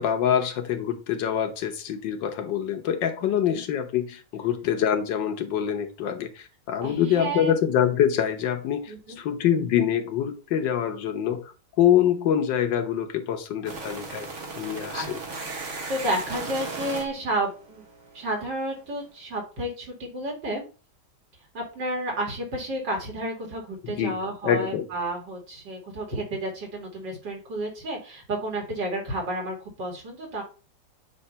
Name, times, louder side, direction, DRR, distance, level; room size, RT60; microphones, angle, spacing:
voice 1, 0.0-11.5 11.8-14.3 14.6-15.2 23.8-24.2 24.4-24.9, left 9 dB, 80° left, 1.6 m, -25 dB
voice 2, 3.2-3.6 6.8-7.6 8.9-9.2 14.9-17.8 18.1-20.6 21.5-30.4, right 1 dB, 75° right, 3.1 m, -31 dB
sound 1, 13.6-18.5, right 3 dB, 45° right, 1.5 m, -37 dB
8.2 x 2.9 x 5.5 m
omnidirectional pair, 2.0 m